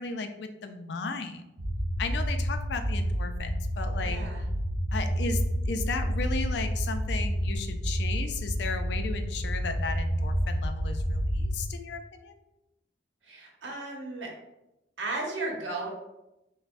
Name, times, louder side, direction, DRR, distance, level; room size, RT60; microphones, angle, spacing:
voice 1, 0.0-1.4 2.0-4.2 4.9-12.3, left 4 dB, 65° left, 7 dB, 0.4 m, -35 dB
sound 1, 1.6-11.6, equal, 35° right, 0.6 m, -29 dB
voice 2, 4.0-4.4 13.2-14.3 15.0-15.9, right 2 dB, 80° right, -1 dB, 1.0 m, -35 dB
6.3 x 2.2 x 2.5 m, 0.92 s
head